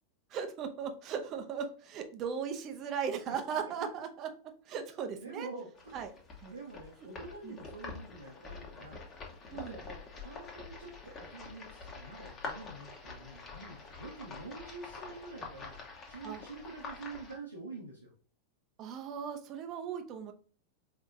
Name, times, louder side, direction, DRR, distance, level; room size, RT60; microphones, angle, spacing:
voice 1, 0.3-4.3 4.7-5.5 5.9-6.1 6.4-6.5 7.4-7.6 9.5-9.8 16.2-16.4 18.8-20.3, right 7 dB, 35° right, 7 dB, 0.7 m, -37 dB
voice 2, 3.5-3.9 5.0-5.9 6.5-9.0 9.5-18.1, right 3 dB, 80° right, -4 dB, 1.0 m, -47 dB
sound 1, 5.7-17.3, left 4 dB, 25° left, 1.2 m, -46 dB
4.8 x 3.3 x 2.6 m, 0.42 s
figure-of-eight pair, 90°, 0 cm